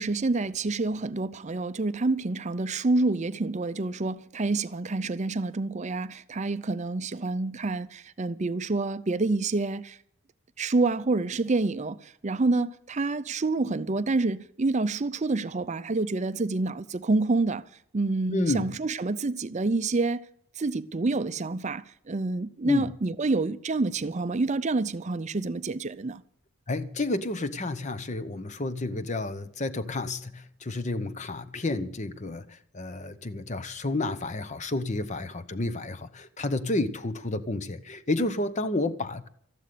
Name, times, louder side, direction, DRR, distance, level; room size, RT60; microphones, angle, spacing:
voice 1, 0.0-10.0 10.6-17.6 17.9-20.2 20.6-26.2, right 3 dB, 30° right, 0.5 m, -28 dB
voice 2, 18.3-18.7 22.6-22.9 26.7-39.3, left 2 dB, 30° left, 0.8 m, -30 dB
13.5 x 11.5 x 6.8 m
head